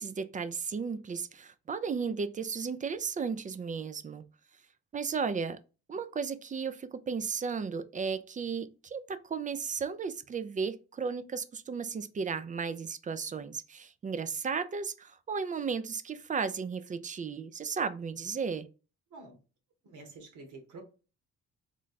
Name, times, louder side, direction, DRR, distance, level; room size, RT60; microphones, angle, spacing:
voice 1, 0.0-4.2 4.9-5.6 5.9-18.7, right 5 dB, 25° right, 0.3 m, -34 dB
voice 2, 19.8-20.8, right 3 dB, 80° right, 1.4 m, -48 dB
3.2 x 2.3 x 4.0 m
cardioid pair, 90°, 30 cm